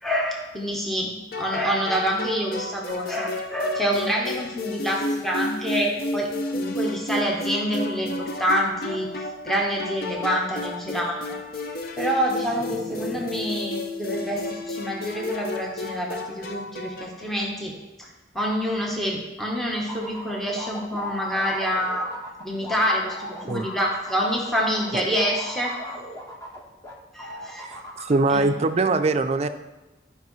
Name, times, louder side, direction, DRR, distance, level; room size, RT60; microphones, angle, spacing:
voice 1, 0.0-6.3 6.5-9.1 9.4-11.4 12.0-18.1 18.3-22.1 22.4-25.7 27.1-27.7 28.3-28.5, equal, ahead, -2 dB, 1.0 m, -27 dB
sound 1, 1.3-17.2, left 1 dB, 55° left, 0.7 m, -32 dB
sound 2, 19.9-26.9 27.2-28.2, equal, 20° left, 1.3 m, -37 dB
voice 2, 27.6-29.5, right 3 dB, 35° right, 9 dB, 0.4 m, -22 dB
13.0 x 5.4 x 3.2 m, 1.1 s
head